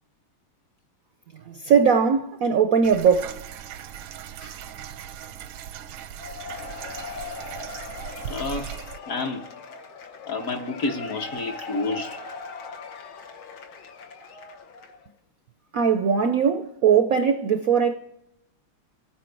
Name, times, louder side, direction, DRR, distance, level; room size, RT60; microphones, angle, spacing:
voice 1, 1.4-3.5 4.4-4.6 15.7-17.9, right 7 dB, 70° right, 0.8 m, -20 dB
sound 1, 2.8-9.0, right 10 dB, 85° right, 1.6 m, -38 dB
Cheering / Applause / Crowd, 6.2-15.1, left 4 dB, 85° left, 2.1 m, -39 dB
voice 2, 8.3-8.7 9.1-9.5 10.2-12.2, left 3 dB, 50° left, 1.3 m, -29 dB
26.5 x 9.3 x 4.5 m
omnidirectional pair, 2.2 m